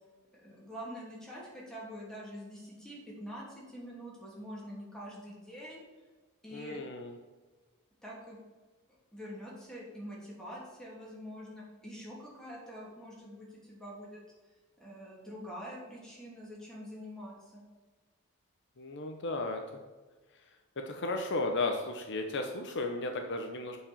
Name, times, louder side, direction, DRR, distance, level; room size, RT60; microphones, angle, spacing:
voice 1, 0.3-5.8 6.4-6.8 8.0-8.4 9.1-14.2 14.8-17.6, equal, 5° left, -5 dB, 2.8 m, -45 dB
voice 2, 6.5-7.1 18.8-19.6 20.8-23.8, left 2 dB, 55° left, 4 dB, 0.8 m, -34 dB
8.3 x 4.9 x 7.2 m, 1.3 s
head